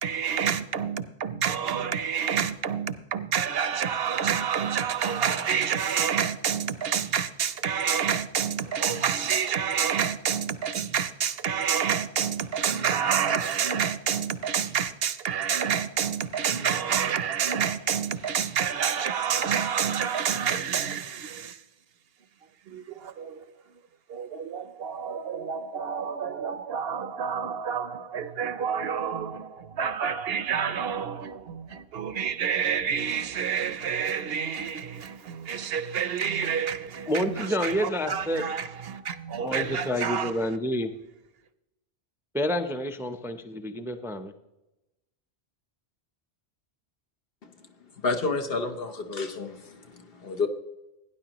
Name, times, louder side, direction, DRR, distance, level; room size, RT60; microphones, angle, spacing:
voice 1, 0.0-21.6 22.7-23.4 24.1-40.3, right 7 dB, 70° right, 0.9 m, -28 dB
voice 2, 37.1-38.4 39.4-40.9 42.3-44.3, equal, 5° right, 0.5 m, -28 dB
voice 3, 48.0-49.5 50.2-50.5, left 3 dB, 65° left, 1.3 m, -28 dB
17.0 x 10.0 x 3.0 m
omnidirectional pair, 1.1 m